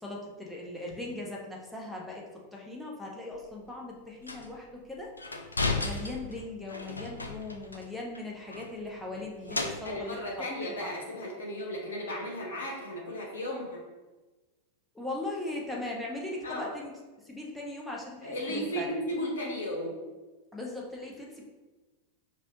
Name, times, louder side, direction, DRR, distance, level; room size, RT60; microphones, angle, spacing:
voice 1, 0.0-2.2 2.5-5.1 5.8-10.3 10.8-10.9 14.9-16.9 17.2-18.9 20.5-21.4, left 2 dB, 5° left, -3 dB, 0.8 m, -39 dB
sound 1, 3.3-3.4 4.3-4.5 5.2-7.8 8.1-8.2 8.5-10.2, left 3 dB, 80° left, 0.4 m, -35 dB
voice 2, 9.8-13.8 16.4-16.7 18.2-19.9, equal, 65° left, -1 dB, 1.1 m, -35 dB
5.3 x 2.5 x 2.7 m, 1.2 s
figure-of-eight pair, 90°, 0 cm